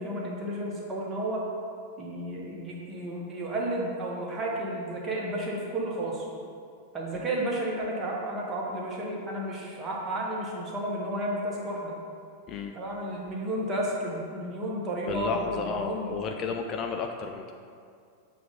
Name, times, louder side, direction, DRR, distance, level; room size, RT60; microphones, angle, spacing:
voice 1, 0.0-1.4 2.0-6.3 6.9-11.9 12.7-16.2, right 1 dB, 25° right, -3 dB, 1.2 m, -32 dB
voice 2, 15.1-17.5, left 5 dB, 30° left, 4 dB, 0.3 m, -32 dB
7.5 x 2.5 x 5.6 m, 2.3 s
figure-of-eight pair, 90°, 0 cm